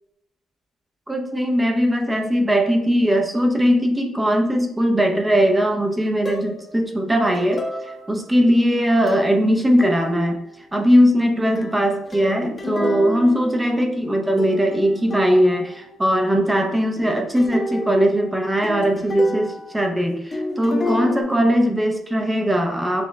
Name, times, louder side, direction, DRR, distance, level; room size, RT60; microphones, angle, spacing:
voice 1, 1.1-10.4 10.7-23.0, equal, 15° right, 3 dB, 0.7 m, -19 dB
sound 1, 6.2-6.7 7.3-8.3 9.1-9.4 9.8-10.3 11.5-14.1 14.4-15.8 17.0-20.0 20.3-21.2, left 1 dB, 35° left, 0.9 m, -30 dB
6.6 x 2.8 x 2.2 m, 0.81 s
cardioid pair, 90°, 0 cm